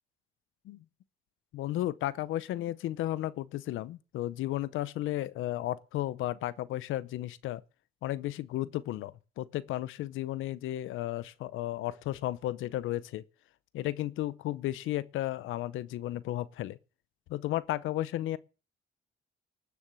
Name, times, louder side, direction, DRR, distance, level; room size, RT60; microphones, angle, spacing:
voice 1, 1.5-7.6 8.0-13.2 13.7-16.8 17.3-18.4, left 14 dB, 85° left, 0.7 m, -34 dB
19.0 x 7.2 x 6.3 m
cardioid pair, 90°, 20 cm